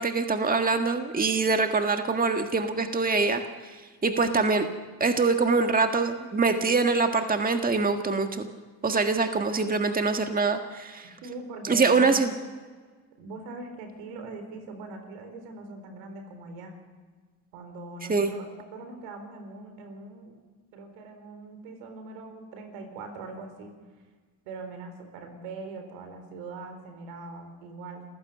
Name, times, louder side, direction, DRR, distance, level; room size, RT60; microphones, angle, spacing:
voice 1, 0.0-3.7 4.0-4.6 5.0-8.5 8.8-11.1 11.7-12.3 18.1-18.3, right 4 dB, 20° right, 6 dB, 1.7 m, -24 dB
voice 2, 4.0-4.4 11.2-12.2 13.2-16.8 17.5-18.4 18.7-20.3 20.7-23.7 24.4-28.0, right 3 dB, 75° right, 6 dB, 4.2 m, -41 dB
27.5 x 15.5 x 6.7 m, 1.4 s
hypercardioid pair, 65°, 45 cm